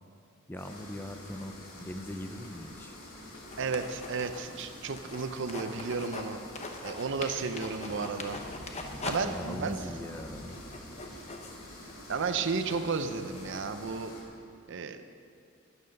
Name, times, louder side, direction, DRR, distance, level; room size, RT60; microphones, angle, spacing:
voice 1, 0.5-3.0 9.2-10.6, left 1 dB, 10° left, 7 dB, 0.5 m, -41 dB
sound 1, 0.6-14.2, left 1 dB, 75° left, 3.0 m, -47 dB
sound 2, 3.5-6.3 6.6-9.2 9.5-9.6 10.0-13.6, left 3 dB, 30° left, 0.9 m, -42 dB
voice 2, 3.6-6.4 6.8-8.4 9.0-9.8 12.1-14.1 14.7-15.0, right 4 dB, 60° right, 9 dB, 0.6 m, -33 dB
12.0 x 9.9 x 5.3 m, 2.4 s
head